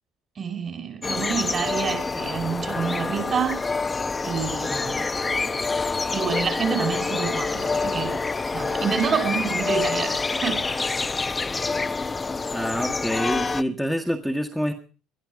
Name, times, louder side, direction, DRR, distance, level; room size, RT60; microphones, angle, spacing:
voice 1, 0.4-3.7 4.2-5.0 6.1-8.2 8.5-10.7, right 7 dB, 35° right, 5.1 m, -28 dB
sound 1, 1.0-13.6, left 4 dB, 20° left, 0.9 m, -27 dB
voice 2, 12.5-14.7, equal, ahead, 1.7 m, -26 dB
21.5 x 13.0 x 5.1 m
figure-of-eight pair, 60°, 0 cm